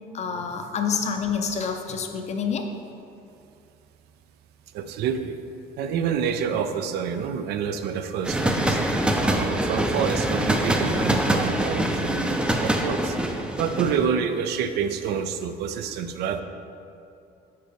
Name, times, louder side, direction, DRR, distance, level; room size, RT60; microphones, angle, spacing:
voice 1, 0.1-2.7, left 6 dB, 40° left, 5 dB, 0.6 m, -27 dB
voice 2, 4.7-5.4 5.8-8.8 9.2-13.2 13.6-16.4, right 7 dB, 75° right, 8 dB, 0.4 m, -28 dB
sound 1, 8.2-14.1, right 1 dB, 5° right, 0.4 m, -24 dB
6.6 x 4.5 x 3.4 m, 2.6 s
cardioid pair, 110°, 17 cm